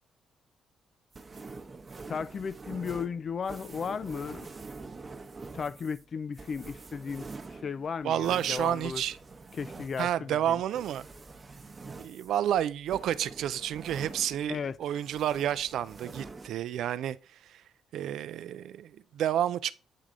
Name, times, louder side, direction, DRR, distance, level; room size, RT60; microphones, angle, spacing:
sound 1, 1.1-14.6 14.9-16.5, right 3 dB, 30° right, 0.9 m, -46 dB
voice 1, 2.1-4.5 5.5-9.0 9.5-10.6 14.5-14.8, left 6 dB, 45° left, 0.4 m, -35 dB
voice 2, 8.0-9.2 10.0-11.1 12.0-17.2 17.5-17.6 17.9-19.7, right 11 dB, 75° right, 0.4 m, -30 dB
8.5 x 3.4 x 3.7 m
cardioid pair, 90°, 0 cm